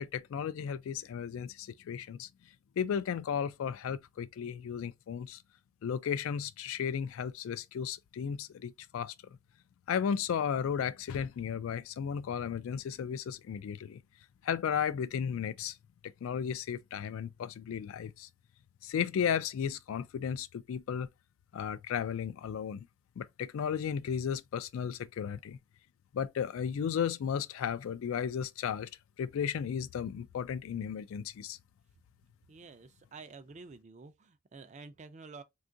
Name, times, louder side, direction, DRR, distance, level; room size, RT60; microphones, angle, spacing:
voice 1, 0.0-2.3 2.8-5.4 5.8-9.1 9.9-14.0 14.4-15.8 16.2-18.3 18.8-21.1 21.5-22.9 23.2-25.6 26.1-28.9 29.2-31.6, left 7 dB, 70° left, 0.3 m, -34 dB
voice 2, 32.5-35.4, right 4 dB, 35° right, 0.4 m, -50 dB
3.6 x 2.3 x 2.6 m
head